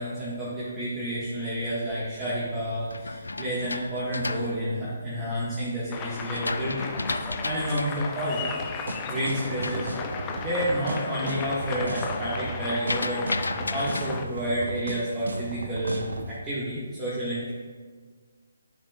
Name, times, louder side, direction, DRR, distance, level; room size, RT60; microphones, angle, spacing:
voice 1, 0.0-8.6 9.1-9.9 10.4-13.2 13.7-17.5, equal, 15° right, -11 dB, 1.7 m, -30 dB
sound 1, 1.7-5.5 6.0-10.8 11.2-11.6 11.9-14.1, left 2 dB, 75° left, 0.4 m, -35 dB
sound 2, 5.9-14.2, left 5 dB, 20° left, 0.5 m, -35 dB
sound 3, 8.4-16.3, right 2 dB, 70° right, 0.8 m, -34 dB
11.0 x 6.0 x 2.5 m, 1.5 s
figure-of-eight pair, 145°, 0 cm